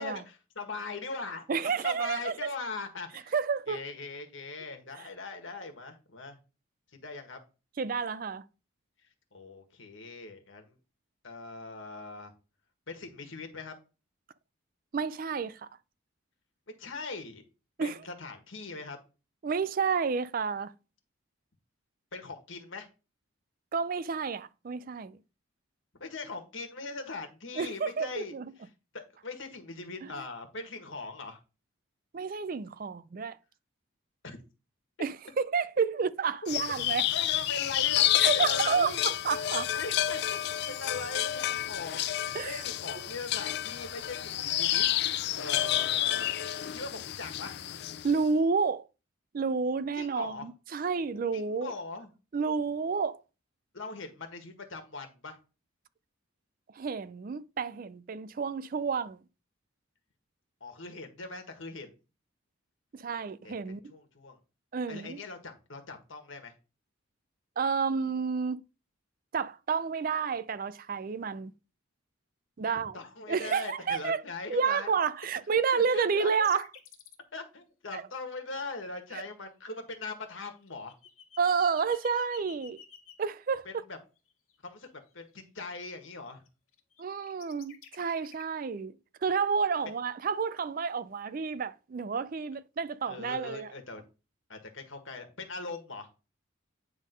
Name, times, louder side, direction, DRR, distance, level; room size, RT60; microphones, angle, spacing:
voice 1, 0.0-1.5 1.8-3.3 3.7-6.4 7.0-7.4 9.3-10.7 11.2-12.3 12.9-13.7 16.8-17.4 17.8-19.0 22.1-22.9 26.0-28.3 28.9-31.4 34.2-34.4 37.1-39.1 39.4-40.2 40.5-46.3 46.6-47.5 49.9-50.5 51.3-52.1 53.7-55.4 60.6-61.9 63.4-63.5 63.9-64.4 64.9-66.5 72.6-74.9 75.7-76.3 77.3-80.9 83.6-84.0 84.6-86.4 93.1-94.0 94.5-96.1, left 3 dB, 65° left, 1.6 m, -41 dB
voice 2, 1.5-2.3 3.3-3.8 7.8-8.4 14.9-15.7 17.8-18.0 19.4-20.7 23.7-25.2 27.6-28.5 32.1-33.4 35.0-37.1 38.2-39.7 42.3-42.6 48.0-48.9 49.3-51.7 52.3-53.2 56.7-59.2 62.9-63.8 64.7-65.2 67.6-68.6 69.3-71.5 72.6-73.0 73.3-74.2 74.5-76.7 77.9-78.0 79.1-79.2 81.4-82.8 83.2-83.7 87.0-89.0 89.2-93.7, right 5 dB, 40° right, 0.3 m, -30 dB
sound 1, 36.5-48.2, left 12 dB, 50° left, 0.3 m, -30 dB
sound 2, 75.4-75.5 75.8-77.1 78.3-78.7 79.1-83.3 84.2-85.4 85.8-86.5 86.7-88.4, left 8 dB, 90° left, 1.9 m, -52 dB
9.4 x 3.6 x 5.2 m
head